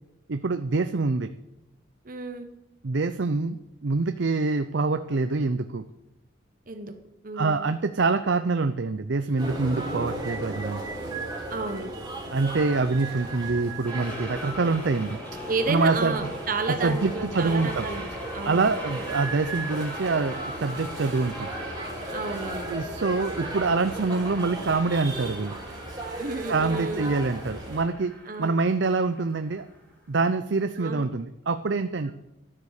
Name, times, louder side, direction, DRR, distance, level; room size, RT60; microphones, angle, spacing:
voice 1, 0.3-1.3 2.8-5.8 7.3-10.8 12.3-15.2 15.7-16.2 16.8-17.9 18.4-21.5 22.7-25.6 26.5-28.1 28.4-29.7 30.1-32.1, right 3 dB, 65° right, 9 dB, 0.6 m, -25 dB
voice 2, 2.0-2.5 6.7-6.9 7.2-7.7 11.5-11.9 15.5-18.7 22.1-22.7 26.2-27.1 28.3-28.6 30.8-31.1 32.0-32.1, right 3 dB, 45° right, 6 dB, 1.0 m, -32 dB
sound 1, 9.4-27.8, right 2 dB, 20° right, 4.2 m, -36 dB
sound 2, 13.8-30.1, equal, 10° left, 3.5 m, -41 dB
13.5 x 10.0 x 6.5 m, 0.91 s
head